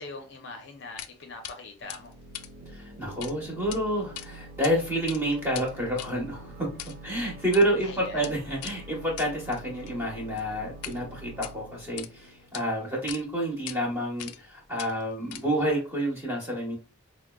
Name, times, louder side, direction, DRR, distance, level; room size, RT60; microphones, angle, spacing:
voice 1, 0.0-2.1 7.8-8.4, left 3 dB, 50° left, 3 dB, 0.6 m, -42 dB
sound 1, 1.0-1.1 1.4-1.6 1.9-3.3 3.6-3.8 4.1-4.7 5.0-11.0 11.3-12.1 12.5-12.6 13.1-13.2 13.7-13.8 14.2-14.5 14.8-15.7, left 12 dB, 90° left, 0.3 m, -42 dB
sound 2, 1.8-13.3, right 2 dB, 40° right, 0.5 m, -46 dB
voice 2, 2.7-6.7 7.0-16.8, right 1 dB, 10° right, -2 dB, 1.0 m, -29 dB
4.8 x 2.0 x 2.3 m, 0.33 s
head